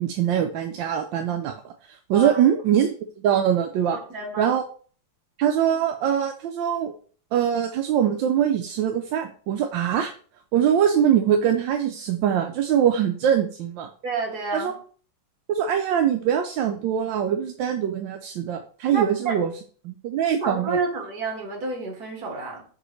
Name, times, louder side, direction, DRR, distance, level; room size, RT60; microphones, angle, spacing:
voice 1, 0.0-4.0 4.4-4.6 5.4-6.9 7.3-10.1 10.5-13.9 14.5-14.7 15.5-19.5 19.8-20.8, right 9 dB, 80° right, 5 dB, 1.3 m, -23 dB
voice 2, 4.1-4.6 14.0-14.8 18.9-19.4 20.4-22.6, right 3 dB, 55° right, 0 dB, 2.2 m, -29 dB
6.2 x 5.0 x 3.1 m, 0.43 s
omnidirectional pair, 2.1 m